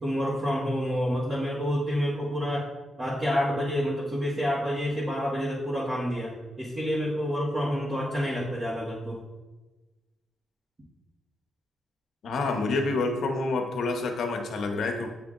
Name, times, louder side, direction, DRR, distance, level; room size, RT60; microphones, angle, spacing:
voice 1, 0.0-2.7 3.0-9.2, equal, 30° right, -8 dB, 1.6 m, -28 dB
voice 2, 12.2-15.1, left 3 dB, 65° left, 3 dB, 0.9 m, -28 dB
8.3 x 3.0 x 3.7 m, 1.2 s
cardioid pair, 100°, 0 cm